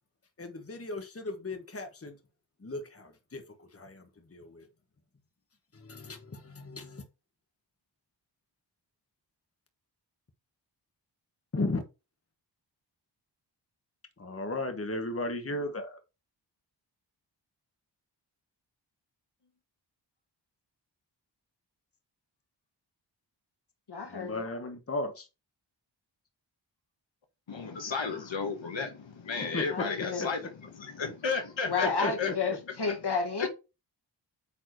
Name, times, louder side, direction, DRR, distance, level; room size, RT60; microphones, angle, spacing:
voice 1, 0.4-2.1 2.6-3.4 3.7-4.0 4.3-4.7 5.8-7.0 11.5-11.8 14.2-16.0 24.1-25.3 29.5-29.9 30.2-30.3 32.0-32.1, left 2 dB, 30° left, 1.3 m, -35 dB
voice 2, 23.9-24.4 28.1-28.2 29.7-30.3 31.7-33.5, left 4 dB, 60° left, 1.9 m, -31 dB
voice 3, 27.5-32.3 32.9-33.0 33.4-33.5, left 5 dB, 75° left, 1.4 m, -33 dB
8.4 x 4.6 x 3.1 m
wide cardioid pair, 75°, 45 cm